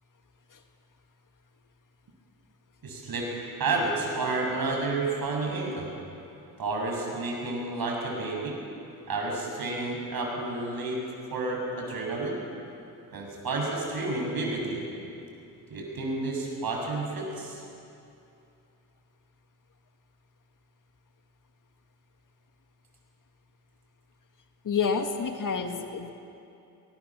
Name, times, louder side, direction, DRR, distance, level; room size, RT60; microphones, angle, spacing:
voice 1, 2.8-5.9 6.6-8.6 9.1-11.0 11.3-12.4 13.1-14.8 15.7-17.6, right 3 dB, 50° right, 0 dB, 7.2 m, -30 dB
voice 2, 24.6-26.1, left 5 dB, 45° left, 5 dB, 2.0 m, -29 dB
21.5 x 19.5 x 7.4 m, 2.7 s
supercardioid pair, 60°, 45 cm